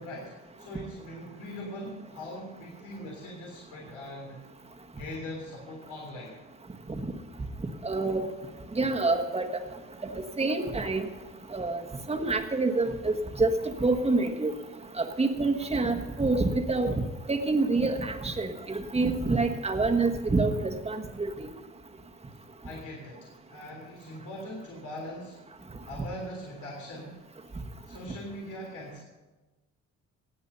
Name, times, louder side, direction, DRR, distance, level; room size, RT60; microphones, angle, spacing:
voice 1, 0.0-4.4 4.9-6.4 22.6-25.4 25.8-27.2 27.9-29.0, left 1 dB, 75° left, -2 dB, 3.4 m, -41 dB
voice 2, 7.8-8.2 8.7-9.5 10.0-10.1 10.4-11.1 11.5-11.8 12.1-13.5 13.8-14.5 15.0-21.5, right 3 dB, 20° right, 3 dB, 1.5 m, -27 dB
17.0 x 8.7 x 5.6 m, 1.2 s
cardioid pair, 90°, 30 cm